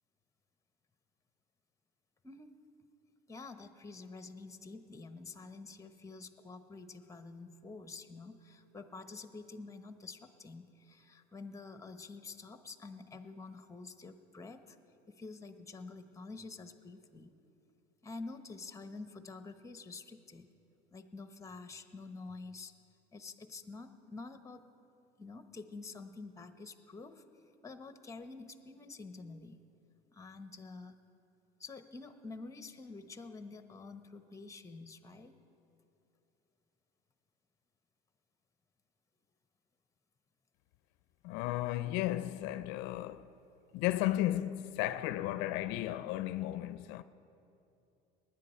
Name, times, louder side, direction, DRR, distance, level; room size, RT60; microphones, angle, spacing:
voice 1, 3.3-14.8 15.1-17.3 18.0-20.5 20.9-22.7 23.1-24.6 25.2-27.2 27.6-29.6 30.1-31.0 31.6-35.3, left 3 dB, 15° left, 0.9 m, -48 dB
voice 2, 41.2-43.3 43.7-47.0, left 14 dB, 80° left, 0.4 m, -34 dB
19.0 x 10.0 x 4.4 m
supercardioid pair, 95°, 19 cm